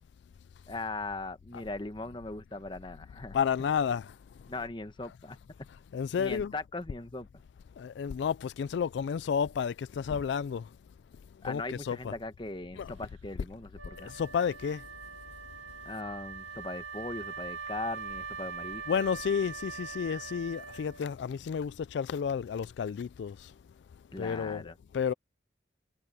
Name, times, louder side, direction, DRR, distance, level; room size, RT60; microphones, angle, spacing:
voice 1, 0.7-3.4 4.5-5.4 6.2-7.3 11.4-14.2 15.8-19.1 24.1-24.8, left 2 dB, 25° left, 1.1 m, -39 dB
voice 2, 3.3-4.1 5.9-6.5 7.8-10.6 11.4-12.0 12.8-12.9 14.0-14.8 18.9-23.5 24.2-24.6 24.9-25.1, left 7 dB, 75° left, 0.3 m, -31 dB
Wind instrument woodwind instrument, 13.7-21.3, right 5 dB, 90° right, 2.8 m, -42 dB
head